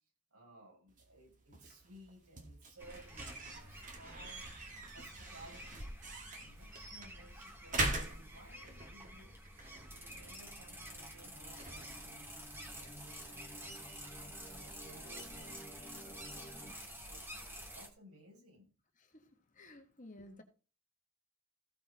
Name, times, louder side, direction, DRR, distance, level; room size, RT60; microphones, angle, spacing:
voice 1, 0.3-4.5 4.9-6.0 6.3-9.4 9.9-13.8 14.4-18.7, right 1 dB, 85° right, 5.9 m, -59 dB
sound 1, 0.9-13.6, right 2 dB, 35° right, 2.2 m, -44 dB
sound 2, 2.8-17.9, equal, 10° right, 2.0 m, -50 dB
sound 3, 10.0-16.7, equal, 15° left, 2.2 m, -56 dB
voice 2, 19.0-20.4, left 1 dB, 35° left, 1.8 m, -55 dB
15.5 x 5.2 x 5.0 m
head